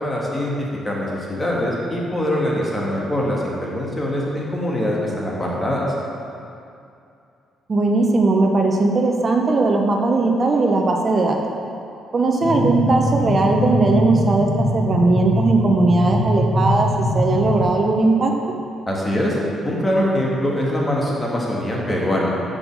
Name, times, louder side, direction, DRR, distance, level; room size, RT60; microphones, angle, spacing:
voice 1, 0.0-5.8 18.9-19.4 19.6-22.3, left 1 dB, 20° left, -4 dB, 1.9 m, -23 dB
voice 2, 7.7-11.4 12.1-16.9 17.1-18.3, right 3 dB, 40° right, 2 dB, 0.8 m, -18 dB
sound 1, 12.4-17.6, left 1 dB, 80° left, 1.5 m, -22 dB
6.7 x 5.6 x 6.1 m, 2.5 s
cardioid pair, 90°, 0 cm